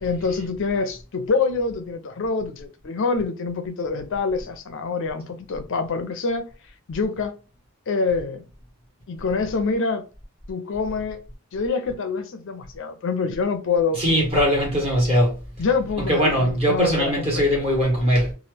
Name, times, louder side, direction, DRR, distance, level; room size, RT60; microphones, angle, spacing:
voice 1, 0.0-6.5 6.9-7.3 7.9-8.4 9.1-10.1 10.5-11.2 11.5-14.0 15.6-17.4, left 4 dB, 60° left, 0.5 m, -26 dB
voice 2, 13.9-15.4 16.1-18.3, equal, 25° right, 1.5 m, -20 dB
2.9 x 2.4 x 3.2 m
head